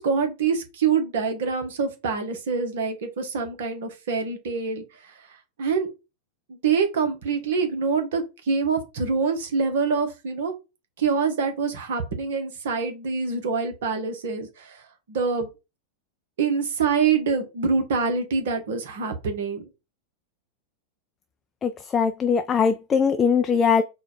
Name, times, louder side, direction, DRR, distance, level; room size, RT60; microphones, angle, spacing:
voice 1, 0.0-4.8 5.6-5.9 6.5-10.5 11.0-14.8 15.1-15.5 16.4-19.7, right 5 dB, 55° right, 1.1 m, -25 dB
voice 2, 21.6-23.8, left 6 dB, 20° left, 0.4 m, -21 dB
4.2 x 2.3 x 4.4 m
figure-of-eight pair, 90°, 0 cm